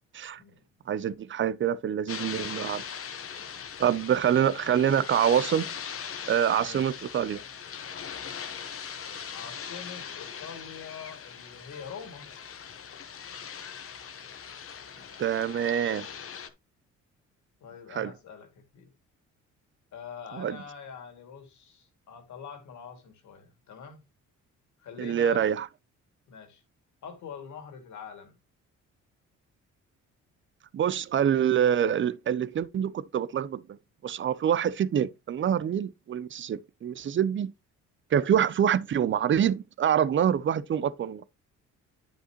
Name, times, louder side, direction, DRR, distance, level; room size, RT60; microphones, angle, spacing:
voice 1, 0.9-2.8 3.8-5.7 6.3-7.4 15.2-16.1 18.0-18.1 20.4-20.6 25.0-25.7 30.7-33.6 34.0-37.5 38.1-41.2, right 9 dB, 40° right, 0.6 m, -26 dB
sound 1, 2.1-16.5, left 7 dB, 45° left, 1.1 m, -40 dB
voice 2, 6.6-7.0 9.3-12.3 17.6-18.9 19.9-24.0 24.8-25.5 26.3-26.6 27.0-28.4, left 6 dB, 70° left, 2.4 m, -44 dB
10.0 x 5.4 x 3.0 m
cardioid pair, 90°, 30 cm